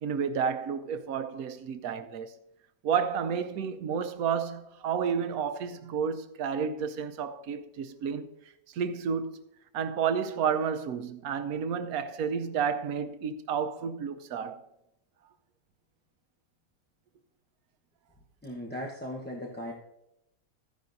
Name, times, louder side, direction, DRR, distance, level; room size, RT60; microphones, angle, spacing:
voice 1, 0.0-2.4 2.8-8.3 8.7-9.4 9.7-14.6, right 7 dB, 90° right, 1.2 m, -31 dB
voice 2, 18.4-19.7, equal, 10° left, 0.8 m, -37 dB
14.0 x 10.0 x 2.6 m
omnidirectional pair, 1.5 m